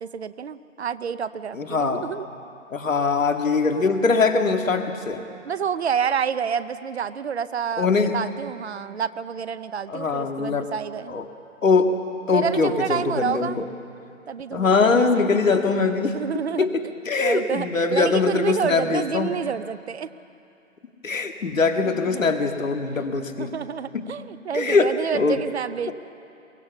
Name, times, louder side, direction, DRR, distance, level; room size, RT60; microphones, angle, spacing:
voice 1, 0.0-2.3 5.4-11.1 12.3-13.6 14.3-15.3 16.1-16.7 17.2-20.1 21.8-22.4 23.4-25.9, right 7 dB, 50° right, 15 dB, 0.7 m, -29 dB
voice 2, 1.5-2.1 2.7-5.2 7.8-8.2 9.9-10.7 11.1-11.3 11.6-11.9 12.3-13.7 14.5-16.2 16.6-19.3 21.0-23.6 23.9-24.1 24.5-25.4 25.9-26.0, left 4 dB, 70° left, 6 dB, 2.0 m, -22 dB
23.0 x 19.0 x 7.1 m, 2.6 s
figure-of-eight pair, 145°, 40 cm